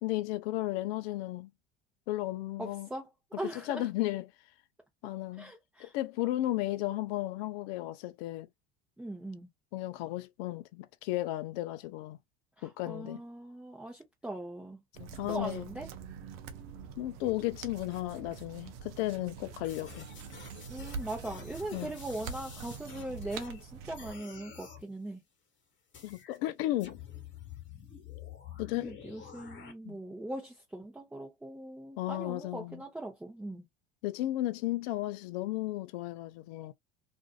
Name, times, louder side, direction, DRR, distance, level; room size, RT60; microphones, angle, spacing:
voice 1, 0.0-1.5 2.1-2.9 3.5-4.3 5.0-5.5 5.8-8.5 9.7-12.2 12.6-13.2 15.0-15.7 17.0-20.1 21.7-21.9 26.0-27.0 28.6-28.9 29.8-30.0 32.0-32.8 34.0-36.7, left 16 dB, 65° left, 0.5 m, -34 dB
voice 2, 2.6-3.1 3.4-3.9 5.4-5.9 9.0-9.5 12.6-14.8 15.3-15.9 20.7-25.2 28.7-33.6, right 1 dB, 5° right, 0.7 m, -40 dB
sound 1, 14.9-24.1, right 6 dB, 65° right, 0.7 m, -45 dB
sound 2, 19.6-23.6 23.9-24.8 25.9-26.4 26.8-29.7, left 8 dB, 35° left, 1.3 m, -49 dB
2.6 x 2.4 x 2.3 m
hypercardioid pair, 85°, 33 cm